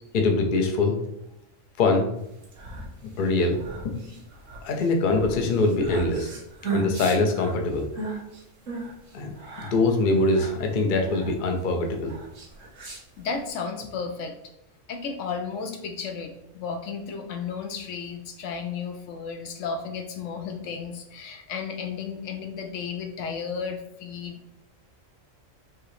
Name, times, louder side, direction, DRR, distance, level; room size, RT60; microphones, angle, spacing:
voice 1, 0.1-1.0 1.8-2.1 3.0-3.6 3.8-4.0 4.6-6.3 6.7-7.9 9.1-9.3 9.6-12.1, left 3 dB, 50° left, 3 dB, 0.7 m, -23 dB
sound 1, 2.3-13.5, right 4 dB, 80° right, 1.5 m, -37 dB
voice 2, 12.9-14.4 14.9-24.4, left 5 dB, 75° left, 5 dB, 0.9 m, -33 dB
4.6 x 2.9 x 3.1 m, 0.81 s
omnidirectional pair, 1.3 m